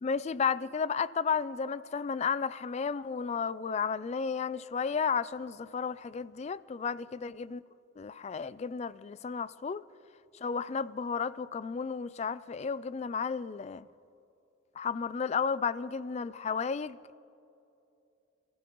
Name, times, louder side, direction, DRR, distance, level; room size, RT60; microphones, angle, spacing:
voice 1, 0.0-7.6 8.0-9.8 10.4-13.9 14.8-17.2, left 6 dB, 35° left, 0.3 m, -33 dB
27.0 x 15.0 x 3.1 m
head